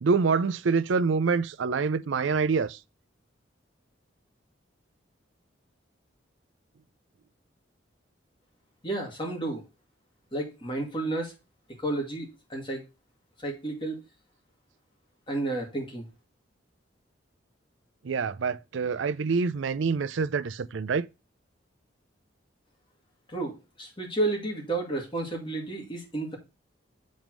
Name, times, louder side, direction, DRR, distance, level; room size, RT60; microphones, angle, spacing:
voice 1, 0.0-2.8 18.0-21.1, right 5 dB, 70° right, 0.4 m, -26 dB
voice 2, 8.8-9.6 10.3-11.3 11.8-12.8 13.4-14.0 15.3-16.1 23.3-26.4, right 2 dB, 25° left, 2.0 m, -31 dB
7.4 x 3.5 x 6.1 m
head